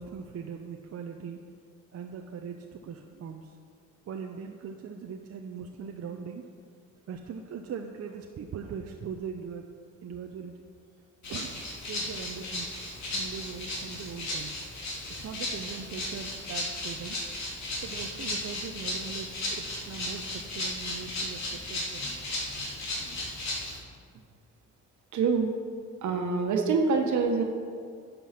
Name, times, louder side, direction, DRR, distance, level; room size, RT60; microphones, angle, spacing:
voice 1, 0.0-1.4 1.9-3.5 4.1-6.5 7.1-9.6 10.0-10.5 11.3-11.6 11.9-12.7 13.1-14.6 15.1-17.2 17.8-22.0, right 6 dB, 55° right, 3 dB, 0.8 m, -40 dB
Rattle (instrument), 11.2-23.8, left 1 dB, 65° left, 3.0 m, -35 dB
voice 2, 25.1-25.5 26.0-27.4, right 4 dB, 70° right, 3 dB, 1.5 m, -25 dB
11.0 x 6.9 x 6.0 m, 2.2 s
cardioid pair, 90°, 30 cm